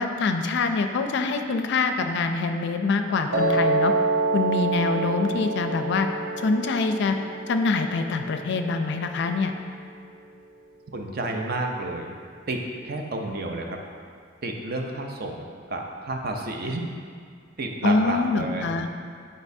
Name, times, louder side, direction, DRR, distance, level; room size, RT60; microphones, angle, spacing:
voice 1, 0.0-3.9 4.3-6.1 6.4-7.2 7.5-9.5 17.8-18.9, left 3 dB, 65° left, 6 dB, 0.4 m, -25 dB
Piano, 3.3-9.5, right 2 dB, 85° right, 1.0 m, -27 dB
voice 2, 10.9-12.2 12.5-13.8 14.4-16.9 17.6-18.7, right 2 dB, 50° right, 2 dB, 0.6 m, -30 dB
8.4 x 5.1 x 2.7 m, 2.1 s
head